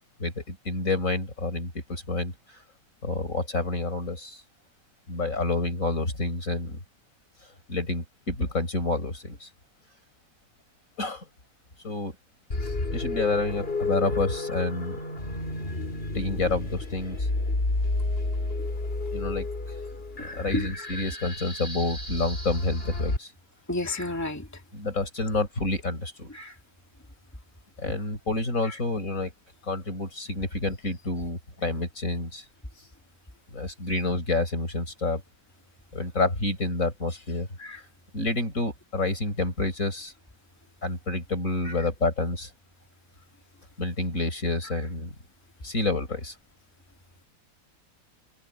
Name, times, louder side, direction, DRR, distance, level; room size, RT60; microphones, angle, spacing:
voice 1, 0.2-2.3 3.0-4.4 5.1-6.8 7.7-9.5 11.0-11.2 11.8-12.1 12.6-15.0 16.1-17.3 19.1-19.5 20.2-23.3 24.7-26.3 27.8-29.3 29.6-32.4 33.5-35.2 35.9-37.5 38.1-40.1 40.8-42.5 43.8-45.1 45.6-46.3, left 2 dB, 60° left, 6.4 m, -28 dB
sound 1, 12.5-23.2, left 2 dB, 40° left, 3.1 m, -31 dB
voice 2, 20.2-20.9 23.7-24.6 26.3-26.6 28.6-28.8 37.6-37.8 41.6-41.9, left 2 dB, 10° left, 2.4 m, -33 dB
open air
omnidirectional pair, 1.6 m